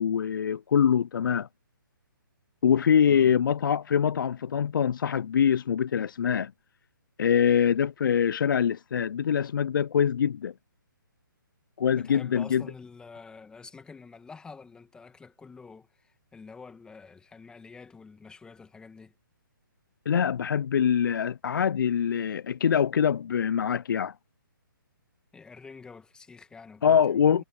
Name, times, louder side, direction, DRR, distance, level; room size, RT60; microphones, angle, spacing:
voice 1, 0.0-1.5 2.6-6.5 7.2-10.5 11.8-12.6 20.1-24.1 26.8-27.4, left 8 dB, 70° left, 0.4 m, -24 dB
voice 2, 11.9-19.1 25.3-27.4, left 4 dB, 5° left, 2.1 m, -47 dB
hypercardioid pair, 145°, 12 cm